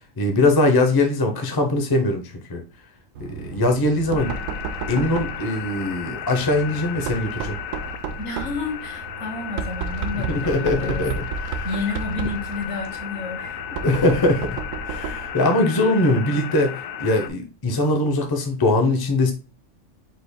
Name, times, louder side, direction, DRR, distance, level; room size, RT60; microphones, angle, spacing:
voice 1, 0.2-2.6 3.2-4.3 4.9-7.6 10.3-11.7 13.7-14.6 14.9-19.3, left 2 dB, 25° left, 4 dB, 0.6 m, -21 dB
Knock, 3.1-15.4, right 6 dB, 90° right, 1.0 m, -33 dB
sound 1, 4.2-17.3, left 9 dB, 85° left, 1.0 m, -34 dB
voice 2, 8.2-11.1 11.6-13.6, left 3 dB, 65° left, 3 dB, 1.5 m, -30 dB
5.1 x 4.2 x 2.2 m, 0.33 s
omnidirectional pair, 1.3 m